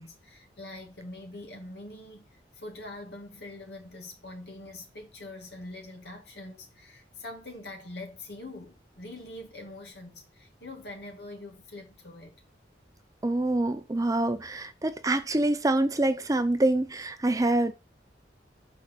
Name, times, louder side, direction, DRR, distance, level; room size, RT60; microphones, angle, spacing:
voice 1, 0.0-12.4, left 2 dB, 65° left, 2.3 m, -44 dB
voice 2, 13.2-17.7, right 2 dB, 20° right, 0.6 m, -26 dB
6.4 x 4.8 x 5.6 m
head